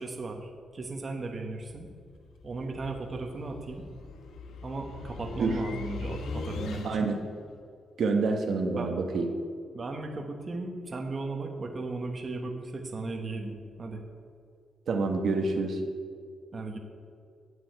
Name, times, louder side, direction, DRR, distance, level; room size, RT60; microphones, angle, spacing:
voice 1, 0.0-1.9 2.4-3.8 4.6-7.1 8.8-8.9 9.7-14.0 16.5-16.8, right 3 dB, 30° right, 2 dB, 1.1 m, -36 dB
sound 1, 1.7-7.3, left 3 dB, 75° left, 1.0 m, -41 dB
voice 2, 6.8-7.2 8.0-9.3 14.9-15.8, right 3 dB, 55° right, 3 dB, 1.1 m, -27 dB
8.6 x 7.9 x 8.6 m, 2.2 s
wide cardioid pair, 160°, 0 cm